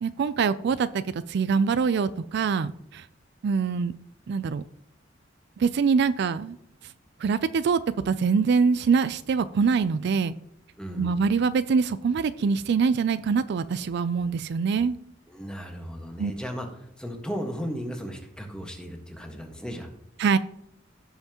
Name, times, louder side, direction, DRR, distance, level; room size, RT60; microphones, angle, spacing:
voice 1, 0.0-3.1 3.4-3.9 4.3-4.6 5.6-6.6 7.2-7.8 8.1-10.3 11.0-15.0 16.2-16.3 20.2-20.4, right 5 dB, 60° right, 14 dB, 0.4 m, -24 dB
voice 2, 10.8-11.2 15.3-19.9, equal, 5° left, 2 dB, 1.5 m, -35 dB
16.0 x 5.7 x 2.9 m, 0.74 s
head